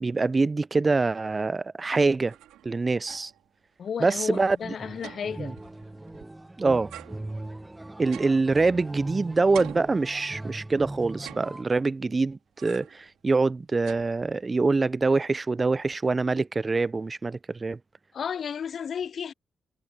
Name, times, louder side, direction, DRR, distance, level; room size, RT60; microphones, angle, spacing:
voice 1, 0.0-2.3 2.6-3.3 4.0-4.7 5.4-5.5 6.6-6.9 8.0-17.8, right 3 dB, 35° right, 0.5 m, -25 dB
sound 1, 2.0-3.5 3.8-3.9 4.2-6.4 6.9-9.1 9.5-10.6 11.1-12.0 12.6-13.1 13.4-14.6, right 13 dB, 85° right, 2.4 m, -47 dB
voice 2, 3.8-5.6 18.1-19.3, left 7 dB, 60° left, 0.4 m, -33 dB
sound 2, 4.6-11.6, right 1 dB, 15° right, 1.5 m, -40 dB
supercardioid pair, 50°, 0 cm